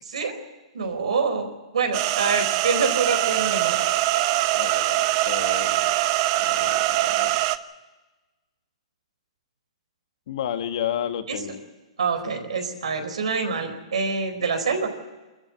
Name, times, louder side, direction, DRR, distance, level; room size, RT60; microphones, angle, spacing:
voice 1, 0.7-1.5 1.7-3.8 11.3-11.4 12.0-14.9, right 5 dB, 85° right, 6 dB, 4.5 m, -25 dB
sound 1, 1.9-7.6, right 16 dB, 45° right, 1.0 m, -23 dB
voice 2, 4.5-5.9 6.4-7.4 10.3-11.6, left 10 dB, 65° left, 7 dB, 1.9 m, -32 dB
24.5 x 14.0 x 10.0 m, 1.2 s
hypercardioid pair, 140°, 3 cm